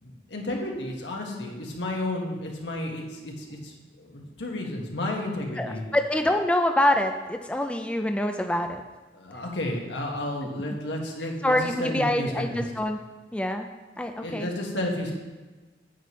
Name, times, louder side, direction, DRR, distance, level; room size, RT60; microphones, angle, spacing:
voice 1, 0.0-5.8 9.1-12.7 14.2-15.1, left 1 dB, 90° left, 0 dB, 1.6 m, -32 dB
voice 2, 5.6-8.8 11.4-13.0 13.3-13.7 14.0-14.5, left 1 dB, 5° left, 5 dB, 0.3 m, -25 dB
9.2 x 9.1 x 3.2 m, 1.3 s
head